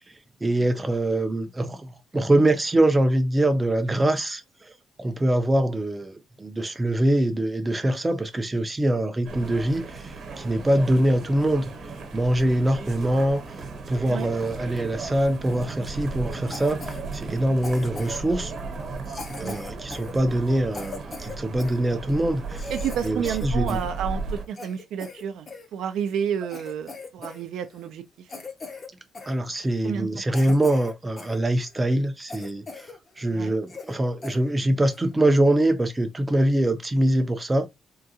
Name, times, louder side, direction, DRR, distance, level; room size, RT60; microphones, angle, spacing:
voice 1, 0.4-4.7 5.0-11.7 12.1-13.4 13.9-18.5 19.3-22.7 23.0-23.8 29.3-32.9 33.2-37.7, right 1 dB, 15° right, 0.5 m, -23 dB
sound 1, 9.2-24.4, right 3 dB, 50° right, 1.0 m, -35 dB
Cough, 16.5-17.0 17.6-18.3 19.1-21.8 22.2-22.3 22.5-23.9 24.2-25.7 26.1-26.2 26.5-27.4 27.7-27.9 28.3-28.9 29.1-29.4 29.9-30.0 30.3-31.4 31.8-31.9 32.3-33.0 33.3-33.4 33.7-34.0 34.2-34.4 34.9-35.1, left 3 dB, 30° left, 0.6 m, -39 dB
voice 2, 22.7-24.2 24.5-28.0 29.8-30.1 30.3-30.5 33.3-33.5, right 8 dB, 80° right, 0.4 m, -30 dB
3.7 x 2.2 x 2.7 m
cardioid pair, 145°, 0 cm